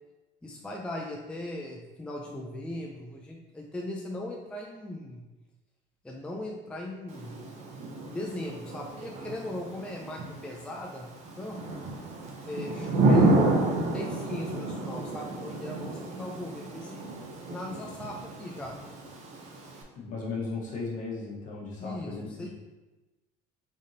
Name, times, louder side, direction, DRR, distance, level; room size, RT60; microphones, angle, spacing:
voice 1, 0.4-5.2 6.0-7.4 8.1-11.6 12.4-17.1 17.5-18.8 21.8-22.5, left 1 dB, 5° left, -1 dB, 0.4 m, -38 dB
Thunder / Rain, 7.1-19.8, right 2 dB, 45° right, 0.7 m, -30 dB
voice 2, 20.0-22.5, left 3 dB, 55° left, -3 dB, 1.1 m, -36 dB
3.7 x 3.5 x 2.7 m, 1.1 s
cardioid pair, 110°, 16 cm